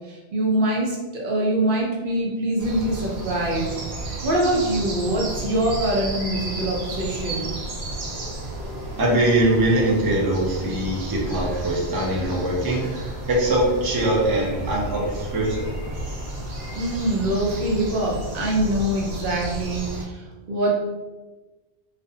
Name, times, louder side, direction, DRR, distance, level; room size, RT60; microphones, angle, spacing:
voice 1, 0.1-3.7 4.2-7.5 16.8-20.7, right 1 dB, 60° right, -2 dB, 0.7 m, -24 dB
sound 1, 2.6-20.0, right 1 dB, 90° right, 0.9 m, -33 dB
voice 2, 9.0-12.9 13.3-15.7, right 1 dB, 35° right, -3 dB, 0.4 m, -22 dB
2.4 x 2.1 x 2.7 m, 1.2 s
omnidirectional pair, 1.0 m